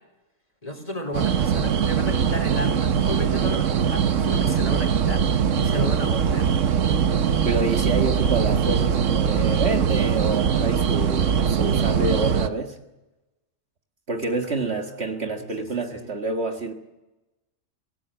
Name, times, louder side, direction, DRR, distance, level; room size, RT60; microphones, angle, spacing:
voice 1, 0.6-6.6 14.4-14.8 15.4-16.1, left 1 dB, 30° left, 4 dB, 3.8 m, -33 dB
sound 1, 1.1-12.5, right 7 dB, 70° right, 1.3 m, -22 dB
voice 2, 7.4-12.8 14.1-16.7, right 3 dB, 55° right, 4 dB, 2.0 m, -27 dB
26.5 x 17.0 x 7.6 m, 1.0 s
omnidirectional pair, 1.4 m